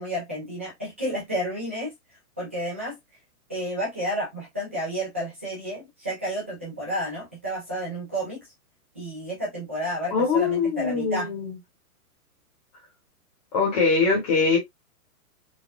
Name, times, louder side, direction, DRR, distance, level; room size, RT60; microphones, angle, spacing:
voice 1, 0.0-1.9 2.4-3.0 3.5-8.5 8.9-11.3, equal, 10° right, 0.5 m, -31 dB
voice 2, 10.1-11.5 13.5-14.6, left 4 dB, 25° left, 1.1 m, -22 dB
4.1 x 2.3 x 2.4 m
hypercardioid pair, 170°, 45 cm